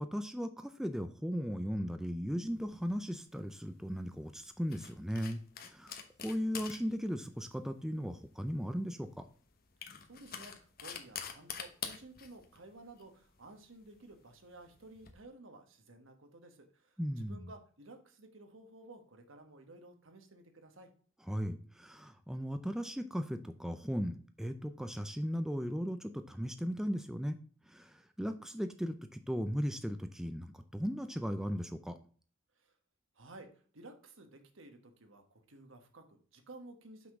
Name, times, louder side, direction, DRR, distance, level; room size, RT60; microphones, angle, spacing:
voice 1, 0.0-5.9 6.2-9.2 17.0-17.5 21.3-27.4 27.7-32.0, equal, 5° right, 8 dB, 0.4 m, -37 dB
sound 1, 2.5-15.1, left 7 dB, 50° left, 1.0 m, -48 dB
voice 2, 10.0-20.9 32.5-32.7 33.1-37.1, right 2 dB, 70° right, 6 dB, 1.3 m, -54 dB
5.9 x 5.8 x 3.6 m, 0.43 s
head